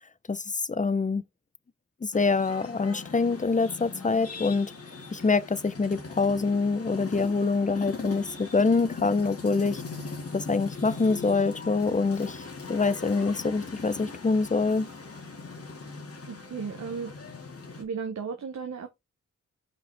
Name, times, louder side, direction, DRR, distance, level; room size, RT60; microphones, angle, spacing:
voice 1, 0.7-1.2 2.0-4.7 5.1-9.8 10.3-12.4 12.7-14.9, left 4 dB, 25° left, 0.7 m, -25 dB
sound 1, 2.1-17.8, left 4 dB, 45° left, 2.1 m, -40 dB
voice 2, 16.3-17.1 17.8-18.9, right 5 dB, 55° right, 1.1 m, -35 dB
5.3 x 5.1 x 3.5 m
supercardioid pair, 40°, 33 cm